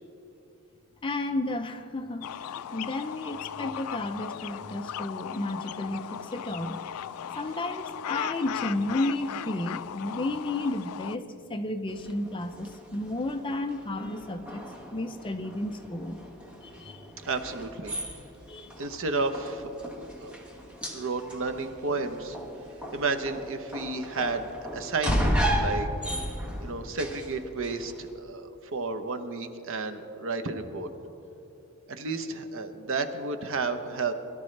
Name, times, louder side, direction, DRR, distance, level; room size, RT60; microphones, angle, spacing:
voice 1, 1.0-2.3 2.7-6.8 7.4-14.6 14.9-16.2 16.6-17.1 18.5-18.7, left 2 dB, 25° left, 6 dB, 0.6 m, -32 dB
sound 1, 2.2-11.2, left 9 dB, 80° left, 0.4 m, -37 dB
sound 2, 11.9-28.1, equal, 5° right, 1.4 m, -35 dB
voice 2, 17.2-17.9 18.8-19.9 20.2-20.4 20.9-22.4 22.9-25.9 26.6-30.9 31.9-34.1, right 3 dB, 65° right, 7 dB, 0.9 m, -32 dB
22.0 x 12.0 x 3.3 m, 2.9 s
head